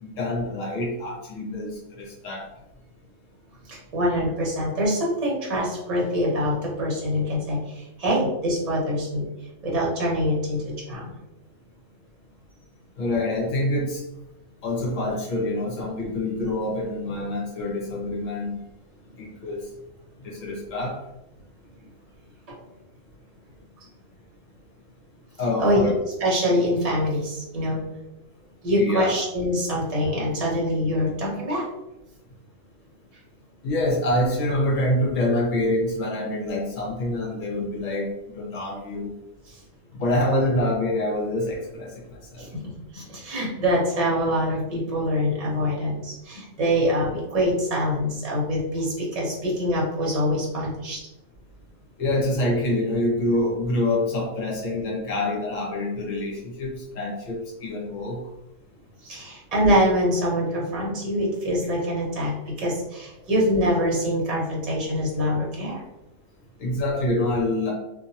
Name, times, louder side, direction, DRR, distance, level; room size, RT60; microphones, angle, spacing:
voice 1, 0.0-2.5 13.0-14.0 14.6-18.6 19.2-19.6 20.2-21.0 25.4-25.9 26.5-26.6 27.6-27.7 28.8-29.1 33.6-39.1 39.9-42.5 52.0-58.2 66.6-67.7, left 1 dB, 65° left, -2 dB, 1.2 m, -26 dB
voice 2, 3.7-9.2 9.6-11.1 25.6-27.8 28.6-31.7 39.5-39.6 42.4-51.0 59.0-65.8, equal, 30° right, -3 dB, 0.8 m, -24 dB
2.8 x 2.5 x 2.7 m, 0.92 s
omnidirectional pair, 1.5 m